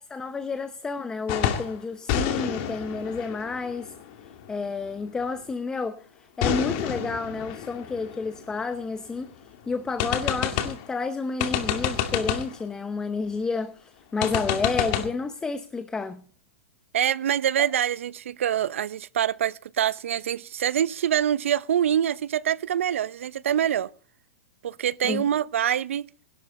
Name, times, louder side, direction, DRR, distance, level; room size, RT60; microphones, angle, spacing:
voice 1, 0.0-3.9 4.5-16.2 25.0-25.2, left 4 dB, 10° left, 0.8 m, -30 dB
sound 1, 1.3-1.8 2.1-4.7 6.4-9.1 9.5-9.6 10.0-10.9 11.4-12.6 14.2-15.1, left 9 dB, 45° left, 2.3 m, -29 dB
voice 2, 16.9-23.9 24.6-26.1, right 10 dB, 80° right, 0.7 m, -25 dB
20.0 x 12.0 x 4.2 m
hypercardioid pair, 145°, 7 cm